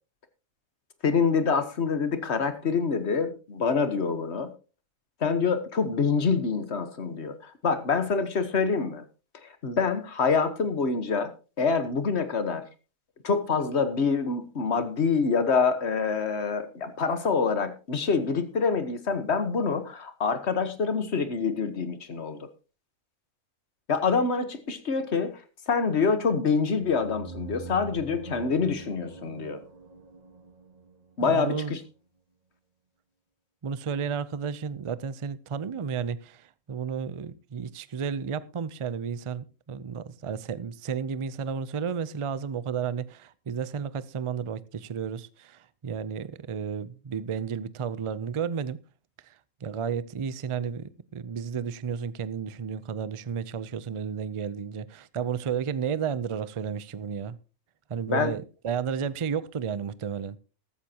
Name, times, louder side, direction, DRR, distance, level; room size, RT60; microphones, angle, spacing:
voice 1, 1.0-4.5 5.2-9.0 9.6-11.3 11.6-12.6 13.2-22.4 23.9-25.3 25.7-29.6 31.2-31.8 58.1-58.3, left 5 dB, 50° left, 1.6 m, -26 dB
sound 1, 26.7-31.3, right 3 dB, 30° right, 1.4 m, -44 dB
voice 2, 31.2-31.7 33.6-48.8 49.3-49.4 49.6-57.4 57.9-60.4, right 7 dB, 55° right, 0.3 m, -32 dB
14.0 x 13.0 x 2.9 m
omnidirectional pair, 1.4 m